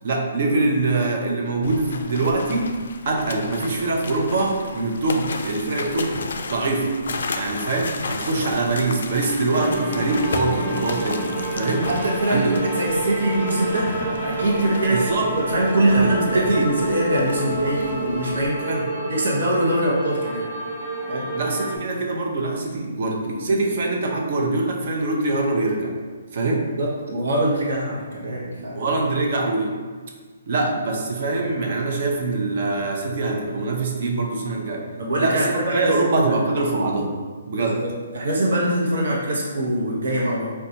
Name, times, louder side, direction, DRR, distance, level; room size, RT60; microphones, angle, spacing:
voice 1, 0.0-2.7 3.1-7.0 7.4-11.9 12.3-12.6 14.9-15.3 15.8-16.7 18.6-18.8 21.3-25.9 26.3-26.6 28.7-29.7 30.5-34.8 35.2-37.1 37.5-37.8, right 2 dB, 45° right, 0 dB, 0.5 m, -24 dB
sound 1, 1.6-18.5, left 3 dB, 70° left, 0.3 m, -34 dB
sound 2, 9.5-21.8, right 1 dB, 10° right, 1.0 m, -28 dB
voice 2, 11.8-18.6 19.1-20.5 21.1-21.3 26.8-28.8 35.0-36.5 37.5-40.5, right 1 dB, 75° right, -4 dB, 0.8 m, -23 dB
4.0 x 2.2 x 2.7 m, 1.5 s
hypercardioid pair, 170°, 0 cm